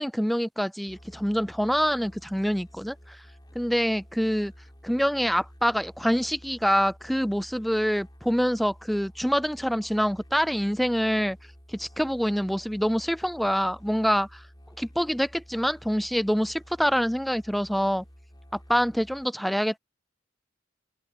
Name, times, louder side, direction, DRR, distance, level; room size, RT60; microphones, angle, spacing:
voice 1, 0.0-3.2 3.6-4.5 4.8-11.4 11.7-14.4 14.8-18.0 18.7-19.8, equal, ahead, 0.3 m, -26 dB
Musical instrument, 0.9-19.2, equal, 25° left, 5.3 m, -51 dB
head